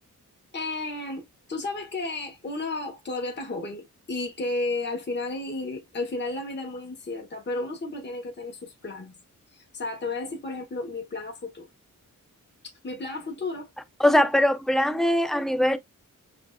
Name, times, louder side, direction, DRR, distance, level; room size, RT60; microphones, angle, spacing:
voice 1, 0.5-9.1 9.5-11.7 12.8-13.7, left 2 dB, 35° left, 1.2 m, -33 dB
voice 2, 14.0-15.8, left 1 dB, ahead, 0.6 m, -21 dB
7.1 x 2.5 x 2.3 m
wide cardioid pair, 155°, 33 cm